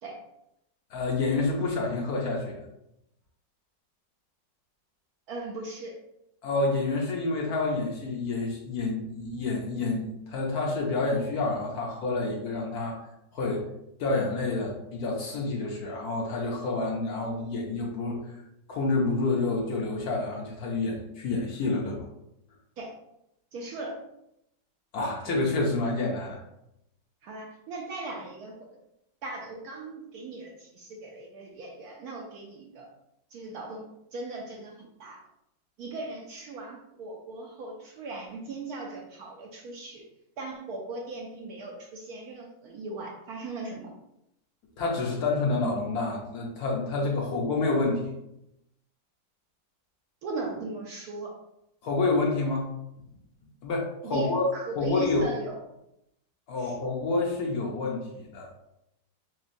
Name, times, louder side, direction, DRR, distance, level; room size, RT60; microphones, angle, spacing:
voice 1, 0.9-2.6 6.4-13.0 13.3-13.7 14.0-18.2 18.7-22.0 24.9-26.4 44.8-48.1 51.8-52.7 53.6-54.5 54.8-55.3 56.5-58.5, left 3 dB, 65° left, -1 dB, 1.1 m, -28 dB
voice 2, 5.3-5.9 22.8-22.9 23.5-24.1 27.2-28.8 29.2-32.9 33.3-35.2 35.8-40.0 40.4-43.9 50.2-51.3 54.0-55.6 56.6-56.7, right 3 dB, 70° right, -1 dB, 1.0 m, -38 dB
6.0 x 2.2 x 2.6 m, 0.82 s
omnidirectional pair, 2.0 m